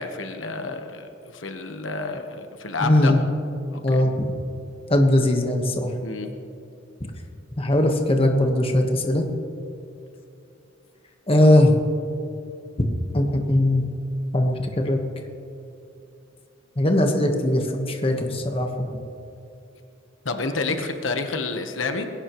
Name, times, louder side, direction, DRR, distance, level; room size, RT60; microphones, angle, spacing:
voice 1, 0.0-3.1 3.7-4.0 6.0-6.3 20.2-22.1, left 3 dB, 80° left, 6 dB, 1.2 m, -29 dB
voice 2, 2.8-3.2 3.8-4.3 4.9-5.9 7.6-9.3 11.3-11.8 13.1-13.8 14.3-15.0 16.8-18.9, left 1 dB, 30° left, 3 dB, 1.3 m, -20 dB
20.5 x 17.0 x 3.1 m, 2.7 s
head